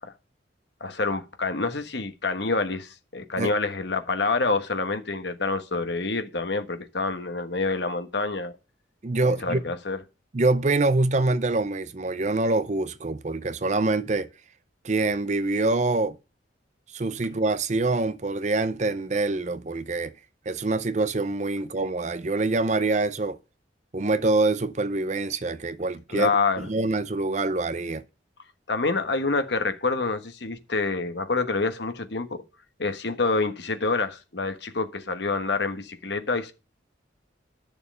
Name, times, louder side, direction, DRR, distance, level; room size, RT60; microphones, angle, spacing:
voice 1, 0.8-8.6 9.3-10.0 26.1-26.7 28.7-32.4 32.8-36.5, left 3 dB, 65° left, 1.4 m, -27 dB
voice 2, 9.0-9.6 10.3-14.3 14.8-16.2 16.9-20.1 20.5-23.4 23.9-26.3 26.6-28.0, right 2 dB, 40° right, 0.6 m, -25 dB
11.0 x 6.9 x 5.5 m
head